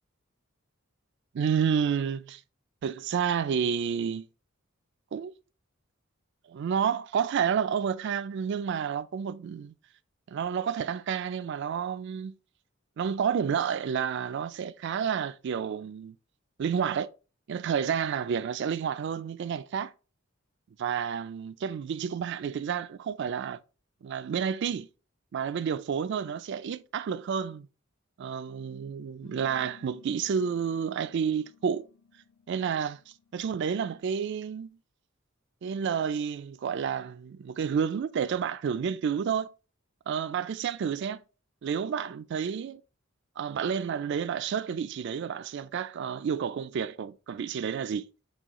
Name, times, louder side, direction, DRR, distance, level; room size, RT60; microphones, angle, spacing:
voice 1, 1.3-2.4 2.8-4.3 5.1-5.3 6.5-9.7 10.3-12.3 13.0-16.2 16.6-17.1 17.5-19.9 20.8-23.6 24.0-24.9 25.3-27.7 28.2-31.9 32.5-33.0 33.3-34.8 35.6-39.5 40.1-41.2 41.6-42.8 43.4-48.0, right 7 dB, 60° right, 0.3 m, -30 dB
sound 1, 29.2-34.2, left 5 dB, 65° left, 0.5 m, -57 dB
6.1 x 2.4 x 2.9 m
head